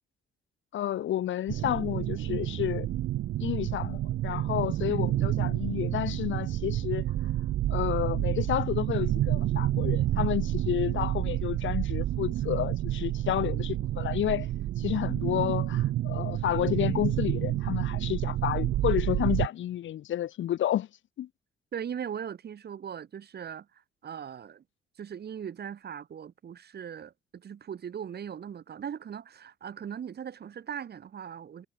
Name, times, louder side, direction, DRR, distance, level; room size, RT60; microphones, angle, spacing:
voice 1, 0.7-2.9 3.4-7.0 7.7-14.5 14.8-20.9 21.2-21.3, left 12 dB, 75° left, 3.2 m, -30 dB
sound 1, 1.5-19.5, right 13 dB, 75° right, 1.4 m, -29 dB
voice 2, 21.7-24.6 25.0-31.7, right 8 dB, 55° right, 4.2 m, -39 dB
cardioid pair, 90°, 20 cm